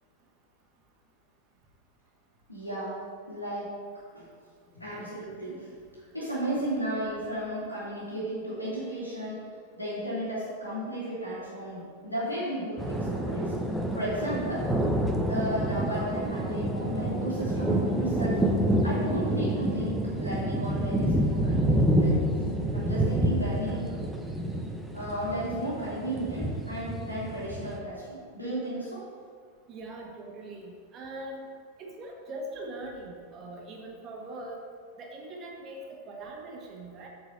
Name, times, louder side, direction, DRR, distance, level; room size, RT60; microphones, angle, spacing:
voice 1, 2.5-3.0 3.3-3.7 4.1-4.2 4.8-5.7 6.1-9.4 9.8-13.5 13.9-14.7 15.3-18.4 18.8-22.2 22.7-23.9 24.9-29.0, right 1 dB, 85° left, -7 dB, 2.3 m, -34 dB
sound 1, 12.8-27.8, right 1 dB, 5° right, 0.8 m, -28 dB
voice 2, 29.7-31.5 31.8-34.6 35.0-37.1, right 1 dB, 30° right, -1 dB, 1.5 m, -41 dB
8.2 x 4.7 x 6.5 m, 2.1 s
figure-of-eight pair, 90°, 0 cm